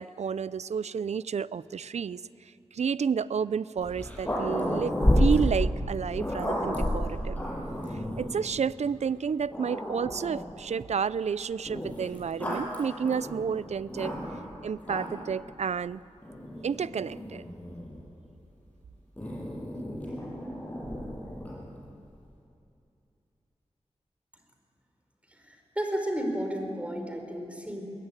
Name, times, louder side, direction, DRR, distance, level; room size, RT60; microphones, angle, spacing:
voice 1, 0.0-2.2 2.7-7.4 8.2-14.1 14.6-16.0 16.6-17.4, right 6 dB, 80° right, 18 dB, 0.5 m, -30 dB
Growling, 3.8-8.4 9.1-9.2 9.5-10.6 11.7-14.5 14.8-15.3 16.2-18.0 19.2-21.7, equal, 15° left, 7.8 m, -31 dB
voice 2, 25.3-27.8, equal, 10° right, 3 dB, 4.5 m, -33 dB
21.5 x 21.0 x 9.1 m, 2.7 s
wide cardioid pair, 70°, 11 cm